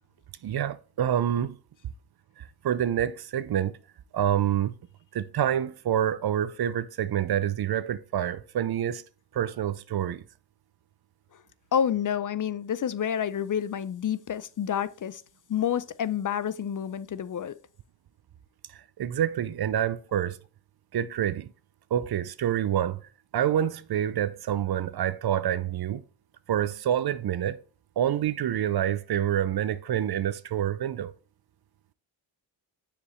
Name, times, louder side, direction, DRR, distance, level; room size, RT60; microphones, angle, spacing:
voice 1, 0.4-1.6 2.4-3.8 4.1-4.7 5.1-9.0 9.3-10.2 18.7-20.4 20.9-21.5 21.9-23.0 23.3-26.0 26.5-27.6 28.0-31.1, right 10 dB, 55° right, 0.6 m, -27 dB
voice 2, 11.7-15.2 15.5-17.6, left 9 dB, 45° left, 0.5 m, -29 dB
6.7 x 5.0 x 3.1 m
cardioid pair, 50°, 46 cm